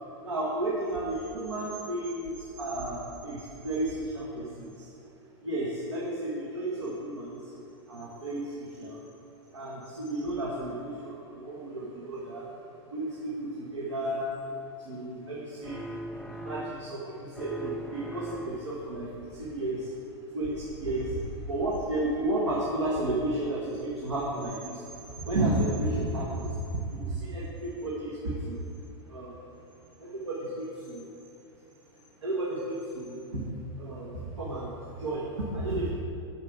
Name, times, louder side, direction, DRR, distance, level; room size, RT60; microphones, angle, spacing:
voice 1, 0.2-4.9 5.4-7.6 7.9-9.0 9.5-12.6 12.9-28.6 29.0-29.5 30.0-31.1 32.2-33.5 33.7-35.9, right 1 dB, 90° right, -5 dB, 1.2 m, -33 dB
sound 1, 15.6-17.0 17.3-18.9, equal, ahead, 0.3 m, -40 dB
6.7 x 5.6 x 4.5 m, 2.6 s
hypercardioid pair, 100°, 15 cm